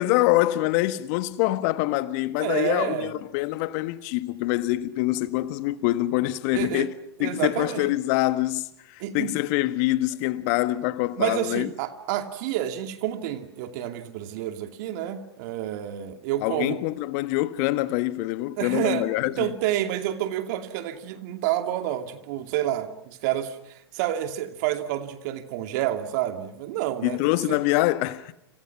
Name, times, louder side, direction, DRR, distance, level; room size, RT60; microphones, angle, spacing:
voice 1, 0.0-6.9 7.2-11.7 16.4-19.5 27.0-28.3, left 17 dB, 40° left, 1.5 m, -25 dB
voice 2, 2.4-3.1 6.5-6.9 7.2-7.9 9.0-9.3 11.2-16.8 18.6-27.6, right 12 dB, 45° right, 2.6 m, -29 dB
30.0 x 27.0 x 6.0 m
figure-of-eight pair, 110°, 13 cm